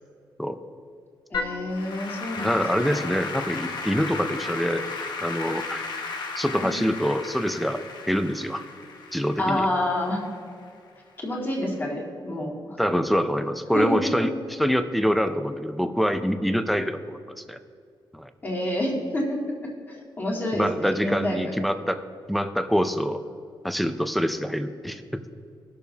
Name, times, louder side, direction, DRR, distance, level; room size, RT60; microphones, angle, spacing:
Applause / Keyboard (musical), 1.3-10.7, left 4 dB, 60° left, 0.9 m, -35 dB
voice 1, 1.3-3.2 9.4-10.2 11.2-12.8 13.7-14.1 18.4-19.4 19.9-21.4, left 1 dB, 20° left, -3 dB, 2.1 m, -28 dB
voice 2, 2.4-4.9 5.2-5.9 6.4-7.8 8.1-8.6 9.1-9.7 12.8-17.6 18.1-18.3 20.5-22.0 22.3-23.2 23.6-25.2, equal, ahead, 9 dB, 0.4 m, -25 dB
19.5 x 6.7 x 2.8 m, 2.3 s
wide cardioid pair, 180°, 9 cm